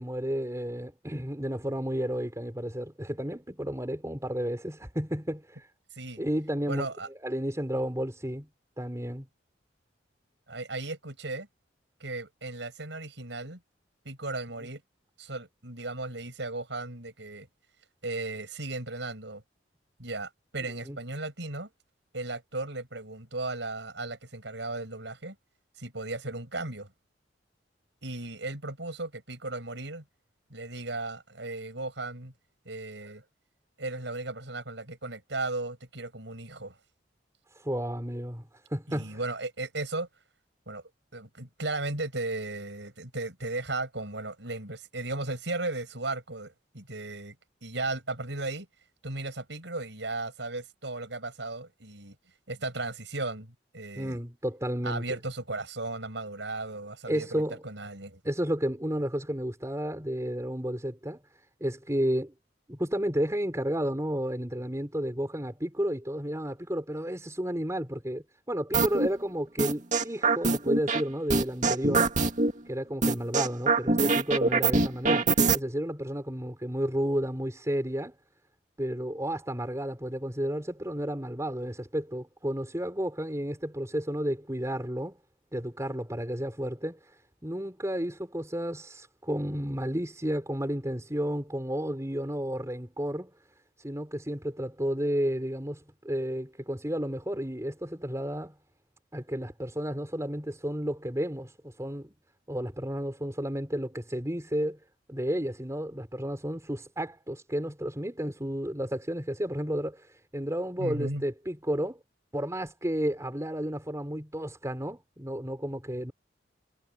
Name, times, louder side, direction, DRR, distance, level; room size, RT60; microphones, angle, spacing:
voice 1, 0.0-5.7 6.2-6.9 7.2-8.5 8.8-9.3 20.8-21.0 37.5-39.2 54.0-55.0 57.1-57.6 58.2-61.2 61.6-62.3 62.7-72.1 72.6-78.1 78.8-85.2 85.5-93.3 93.8-98.5 99.1-102.1 102.5-104.8 105.1-112.0 112.3-116.1, equal, 15° right, 5.0 m, -32 dB
voice 2, 6.6-7.1 10.5-11.5 12.0-13.6 14.0-14.8 15.2-17.5 18.0-19.4 20.0-21.7 22.1-25.4 25.8-26.9 28.0-30.0 30.5-32.3 32.6-33.2 33.8-36.8 38.9-40.1 40.7-40.8 41.1-47.4 47.6-48.7 49.0-52.1 52.5-54.2 54.8-58.2 110.8-111.2, right 2 dB, 70° right, 7.9 m, -36 dB
sound 1, 68.7-69.1 69.6-71.0 71.3-72.5 73.0-75.6, right 3 dB, 45° right, 2.2 m, -23 dB
head